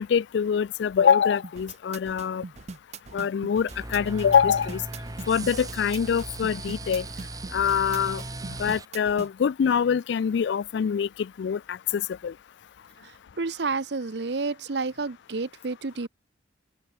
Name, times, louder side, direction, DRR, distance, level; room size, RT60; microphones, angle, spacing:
voice 1, 0.0-2.4 3.1-4.8 5.3-7.0 7.5-8.2 8.6-11.1 11.4-12.3, left 7 dB, 70° left, 0.3 m, -24 dB
sound 1, 1.4-9.3, right 4 dB, 35° right, 0.5 m, -41 dB
sound 2, 3.7-8.8, right 2 dB, 20° right, 1.4 m, -37 dB
voice 2, 13.0-16.1, right 4 dB, 65° right, 0.8 m, -30 dB
open air
head